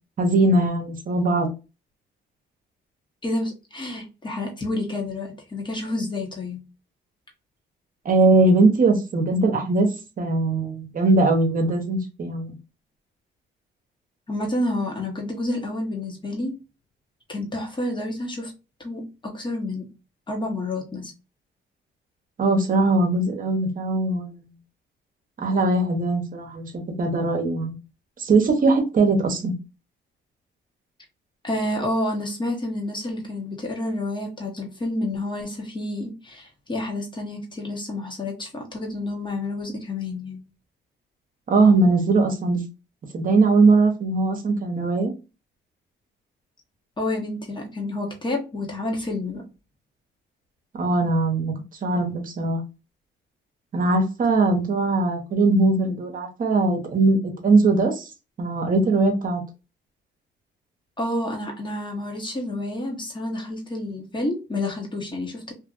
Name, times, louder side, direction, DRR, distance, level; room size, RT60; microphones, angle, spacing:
voice 1, 0.2-1.5 8.0-9.9 10.2-12.5 22.4-24.5 25.4-26.7 27.0-27.7 28.2-29.5 41.5-42.6 43.1-45.1 50.7-51.5 51.8-52.6 53.7-57.2 57.4-58.0 58.4-59.4, right 3 dB, 45° right, 0.9 m, -20 dB
voice 2, 3.2-6.6 14.3-16.5 17.3-18.5 18.8-19.9 20.3-21.1 31.4-40.4 47.0-49.4 61.0-65.5, left 1 dB, 25° left, 1.0 m, -29 dB
2.7 x 2.5 x 2.5 m
cardioid pair, 90°, 20 cm